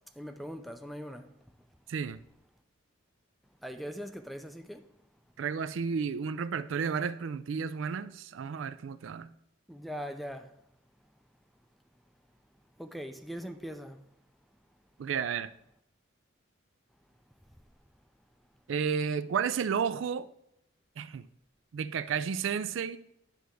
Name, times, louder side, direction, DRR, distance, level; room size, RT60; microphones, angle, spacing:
voice 1, 0.2-1.3 3.6-4.9 9.7-10.5 12.8-14.0, equal, ahead, 0.4 m, -41 dB
voice 2, 1.9-2.2 5.4-9.3 15.0-15.5 18.7-20.3 21.0-21.3 21.7-23.0, right 6 dB, 70° right, 0.4 m, -32 dB
9.4 x 3.4 x 6.3 m
head